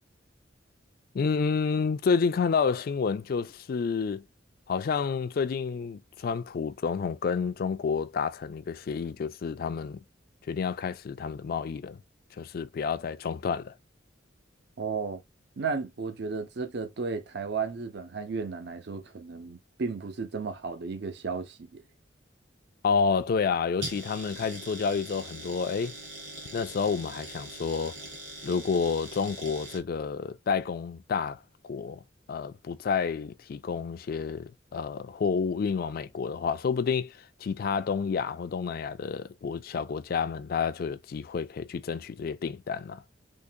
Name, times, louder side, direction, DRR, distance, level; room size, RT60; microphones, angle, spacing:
voice 1, 1.1-4.2 4.7-10.0 10.5-12.0 12.4-13.7 22.8-25.9 26.5-28.0 28.4-32.0 32.3-43.0, left 5 dB, 50° left, 0.3 m, -29 dB
voice 2, 14.8-15.2 15.6-21.8, right 4 dB, 65° right, 0.6 m, -34 dB
sound 1, 23.8-29.8, right 2 dB, 80° right, 1.7 m, -42 dB
3.6 x 2.9 x 2.7 m
head